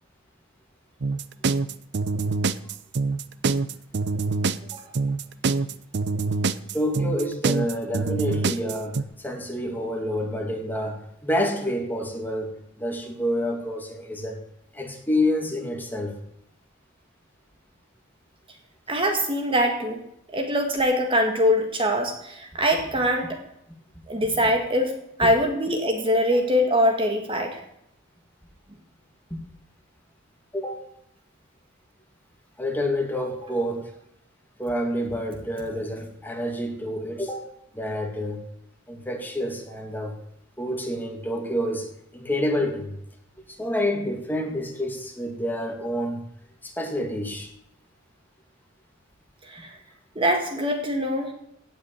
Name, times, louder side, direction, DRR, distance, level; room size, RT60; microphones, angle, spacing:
sound 1, 1.0-9.0, right 3 dB, 60° right, 0.7 m, -25 dB
voice 1, 6.7-14.4 14.7-16.2 25.2-25.3 29.3-29.4 30.5-30.9 32.6-33.9 34.6-38.5 38.9-40.1 40.6-42.9 43.5-46.2 46.6-47.5, left 1 dB, 10° left, 2 dB, 2.3 m, -28 dB
voice 2, 18.9-20.0 20.3-23.4 24.1-27.6 49.4-49.8 50.1-51.3, equal, 25° right, 4 dB, 1.7 m, -23 dB
16.5 x 6.6 x 8.9 m, 0.75 s
head